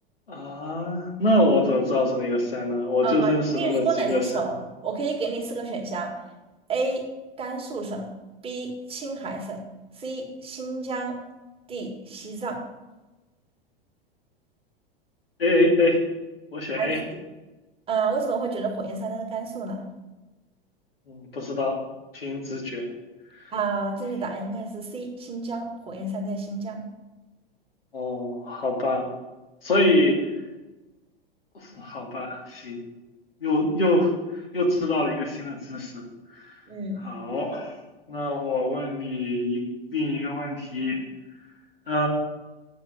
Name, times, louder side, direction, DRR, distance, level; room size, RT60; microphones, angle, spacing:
voice 1, 0.3-4.5 15.4-16.0 16.5-17.0 21.1-21.8 22.1-22.9 27.9-29.1 29.6-30.2 31.6-32.8 33.4-34.1 34.5-36.0 36.4-36.5 37.0-37.7 38.1-39.6 39.9-41.0 41.9-42.1, left 1 dB, 75° left, -2 dB, 2.5 m, -24 dB
voice 2, 3.0-6.2 6.7-7.1 7.4-8.1 8.4-9.6 10.0-11.2 11.7-12.6 16.8-17.2 17.9-19.8 23.5-26.8 36.7-37.1, right 4 dB, 20° right, 0 dB, 1.9 m, -30 dB
8.1 x 7.2 x 6.5 m, 1.1 s
figure-of-eight pair, 95°, 29 cm